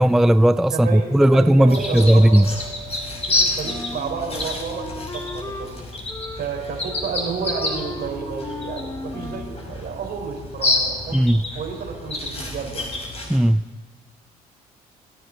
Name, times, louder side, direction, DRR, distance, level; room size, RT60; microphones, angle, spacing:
voice 1, 0.0-2.5 11.1-11.4 13.3-13.6, right 1 dB, ahead, 14 dB, 0.4 m, -15 dB
voice 2, 0.7-2.4 3.3-5.8 6.4-11.2 11.5-12.9, right 6 dB, 60° right, 2 dB, 4.3 m, -31 dB
sound 1, 1.7-13.4, left 2 dB, 35° left, 5.3 m, -29 dB
sound 2, 1.8-4.8, right 5 dB, 20° right, 1.4 m, -40 dB
Wind instrument woodwind instrument, 3.6-5.7 6.1-7.1 7.4-9.6, left 2 dB, 15° left, 1.2 m, -36 dB
29.5 x 10.5 x 4.0 m, 1.4 s
hypercardioid pair, 55°, 18 cm